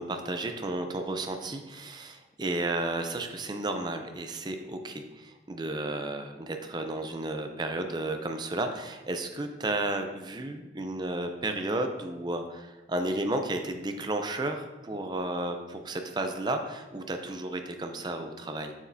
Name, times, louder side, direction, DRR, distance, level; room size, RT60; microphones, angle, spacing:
voice 1, 0.0-18.7, right 2 dB, 25° right, 6 dB, 0.5 m, -33 dB
7.1 x 6.4 x 2.7 m, 1.1 s
head